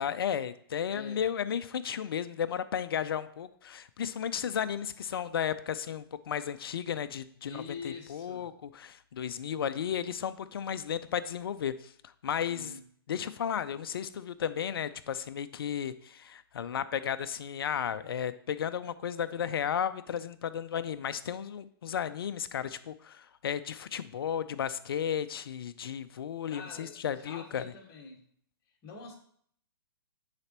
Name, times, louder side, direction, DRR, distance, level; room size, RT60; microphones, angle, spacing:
voice 1, 0.0-12.8 13.1-27.6, left 8 dB, 65° left, 12 dB, 0.5 m, -34 dB
voice 2, 0.9-1.2 7.4-8.4 12.4-12.8 26.5-28.2 28.8-29.1, left 4 dB, 30° left, 1 dB, 1.7 m, -45 dB
9.6 x 4.1 x 3.0 m, 0.63 s
hypercardioid pair, 130°, 13 cm